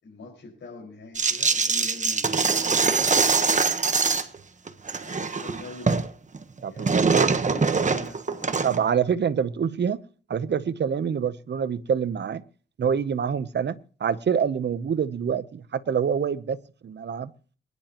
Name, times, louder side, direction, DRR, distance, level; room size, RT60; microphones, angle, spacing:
voice 1, 0.0-3.8 5.0-6.1 6.7-8.6, left 3 dB, 75° left, 5.4 m, -44 dB
sound 1, 1.1-4.3 4.7-6.1 6.3-8.9, right 4 dB, 40° right, 1.2 m, -23 dB
voice 2, 6.6-7.3 8.6-10.0 10.3-12.4 12.8-17.3, right 7 dB, 65° right, 0.9 m, -26 dB
23.0 x 11.0 x 3.0 m
wide cardioid pair, 95°, 20 cm